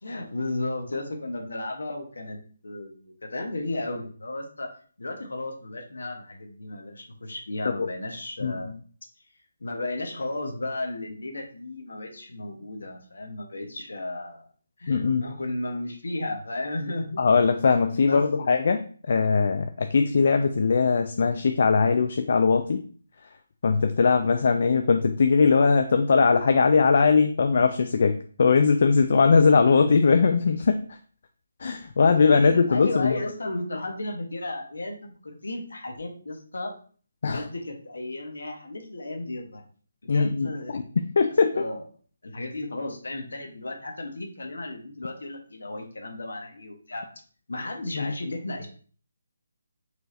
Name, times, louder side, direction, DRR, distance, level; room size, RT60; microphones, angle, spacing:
voice 1, 0.0-2.4 2.6-4.7 5.0-8.8 9.6-14.5 14.8-17.4 18.1-18.5 32.4-36.7 37.2-39.6 40.0-40.8 41.5-41.9 42.2-47.0 47.5-48.7, left 2 dB, 85° left, 3 dB, 1.1 m, -34 dB
voice 2, 8.4-8.8 14.9-15.2 17.2-22.8 23.6-30.8 31.6-33.2 37.2-37.4 40.1-41.5 47.9-48.1, left 5 dB, 55° left, 6 dB, 0.3 m, -20 dB
4.5 x 2.7 x 3.2 m, 0.43 s
hypercardioid pair, 165°, 0 cm